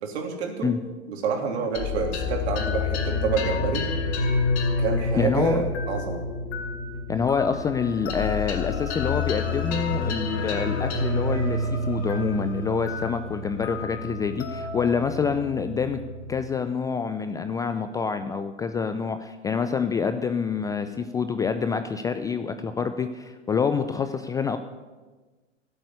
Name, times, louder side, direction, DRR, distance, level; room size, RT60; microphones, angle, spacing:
voice 1, 0.0-0.7 1.1-3.9 4.8-6.2, right 5 dB, 60° right, 3 dB, 3.3 m, -28 dB
sound 1, 1.7-16.4, left 3 dB, 45° left, 4.8 m, -28 dB
voice 2, 5.2-5.6 7.1-16.0 16.3-24.6, left 6 dB, 10° left, 9 dB, 0.4 m, -27 dB
14.5 x 8.1 x 9.7 m, 1.3 s
hypercardioid pair, 110°, 36 cm